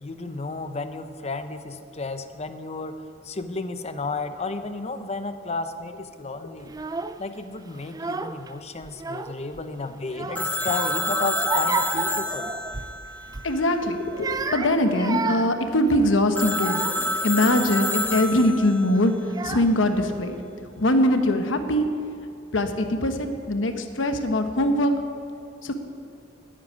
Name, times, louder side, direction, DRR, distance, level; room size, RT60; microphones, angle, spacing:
voice 1, 0.0-3.0 3.2-6.7 7.2-12.5, left 3 dB, 35° left, 9 dB, 0.7 m, -32 dB
Child speech kid speaking / Crying sobbing, 6.7-7.2 7.8-8.5 8.8-9.6 10.1-13.0 13.3-13.5 14.0-17.2 17.8-18.2 18.9-19.0 19.3-20.0, right 4 dB, 20° right, 0.4 m, -32 dB
Telephone, 10.4-14.0 16.4-18.9, left 1 dB, 10° left, 0.9 m, -28 dB
voice 2, 13.4-16.8 17.2-19.2 19.4-20.4 20.8-21.9 22.5-24.9 25.6-25.7, left 1 dB, 75° left, 7 dB, 1.1 m, -22 dB
10.0 x 8.9 x 9.5 m, 2.5 s
head